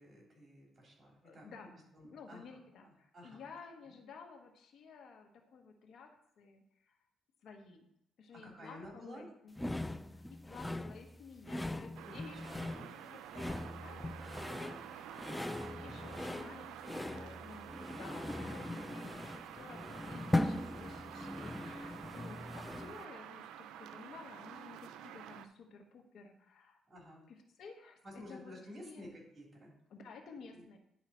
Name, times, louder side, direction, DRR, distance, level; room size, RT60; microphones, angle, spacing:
voice 1, 0.0-1.5 1.9-2.4 2.8-3.4 3.9-4.0 8.4-9.3 12.0-12.9 18.8-19.1 26.9-27.2 28.0-29.7 30.5-30.8, left 1 dB, 35° right, -2 dB, 3.2 m, -52 dB
voice 2, 1.2-6.1 6.4-7.0 7.4-7.9 8.2-26.8 27.3-28.5 28.8-29.1 29.9-30.8, left 5 dB, 70° left, 3 dB, 1.2 m, -54 dB
sound 1, 9.6-23.0, left 1 dB, 10° left, 0.3 m, -40 dB
sound 2, 12.0-25.5, right 10 dB, 90° right, 0.4 m, -49 dB
10.5 x 3.8 x 4.3 m, 0.79 s
cardioid pair, 90°, 0 cm